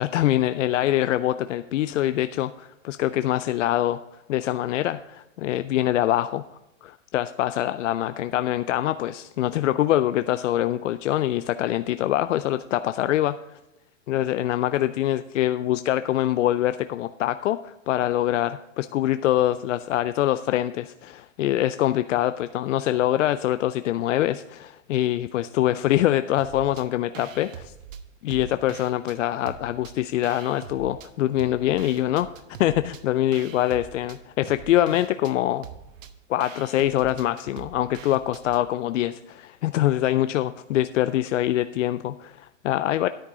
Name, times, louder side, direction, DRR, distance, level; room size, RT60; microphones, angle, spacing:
voice 1, 0.0-4.0 4.3-6.4 6.8-13.6 14.1-27.7 28.2-32.3 32.6-35.7 36.3-43.1, left 13 dB, 65° left, 12 dB, 0.5 m, -24 dB
sound 1, 26.4-26.9 27.1-29.2 29.5-31.1 31.4-38.6, right 7 dB, 75° right, 1.0 m, -43 dB
10.0 x 8.9 x 3.7 m, 0.97 s
hypercardioid pair, 145°, 39 cm